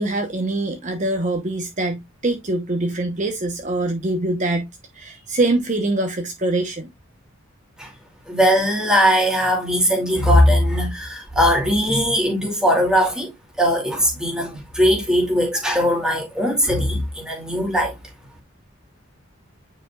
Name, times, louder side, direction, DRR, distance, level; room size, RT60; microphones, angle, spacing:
voice 1, 0.0-4.7 4.9-6.9, right 2 dB, 35° right, 1.0 m, -24 dB
voice 2, 8.3-13.3 13.6-17.9, equal, 5° right, 2.5 m, -19 dB
9.2 x 5.1 x 2.3 m
head